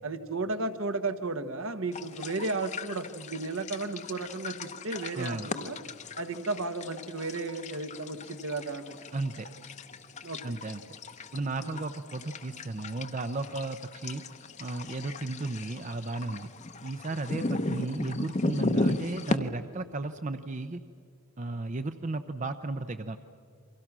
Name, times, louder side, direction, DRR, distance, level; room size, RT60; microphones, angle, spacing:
voice 1, 0.0-5.8 6.2-8.9 10.2-10.4 11.6-11.7, right 3 dB, 60° right, 9 dB, 1.3 m, -34 dB
sound 1, 1.9-19.4, left 2 dB, 30° left, 0.8 m, -36 dB
voice 2, 5.1-5.5 9.1-9.5 10.4-10.8 11.3-14.2 14.6-16.5 16.8-20.8 21.4-23.2, right 2 dB, 35° right, 9 dB, 0.6 m, -34 dB
29.5 x 24.0 x 6.1 m, 2.3 s
head